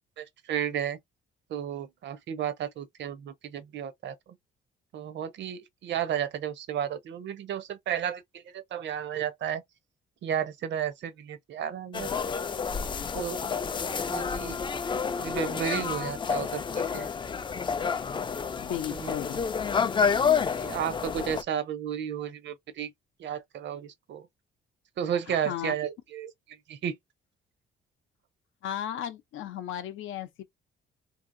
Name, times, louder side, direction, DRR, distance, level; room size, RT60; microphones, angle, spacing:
voice 1, 0.2-1.0 1.5-4.3 4.9-9.6 10.2-12.1 13.1-13.4 14.1-14.6 15.2-17.1 18.9-19.2 20.4-22.9 23.2-24.3 25.0-26.9, right 9 dB, 65° right, 0.6 m, -33 dB
sound 1, 11.9-21.4, left 6 dB, 25° left, 0.3 m, -29 dB
voice 2, 18.6-19.4 25.3-25.7 28.6-30.4, left 10 dB, 80° left, 0.6 m, -35 dB
2.7 x 2.7 x 2.5 m
cardioid pair, 90°, 20 cm